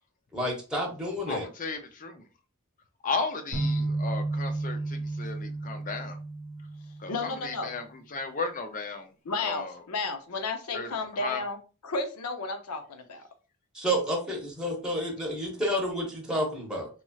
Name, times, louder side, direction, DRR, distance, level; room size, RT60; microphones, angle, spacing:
voice 1, 0.3-1.5 13.7-16.9, equal, 5° right, -2 dB, 0.9 m, -30 dB
voice 2, 1.3-2.2 3.0-4.8 5.2-6.1 7.0-7.1 7.4-7.8 8.1-9.0 9.4-9.7 10.7-10.9 11.2-11.4, left 4 dB, 35° left, 6 dB, 0.5 m, -34 dB
sound 1, 3.5-7.5, right 2 dB, 60° right, 0.8 m, -32 dB
voice 3, 7.1-7.7 9.2-13.2, left 3 dB, 85° left, 5 dB, 0.6 m, -33 dB
3.0 x 2.9 x 2.3 m, 0.34 s
head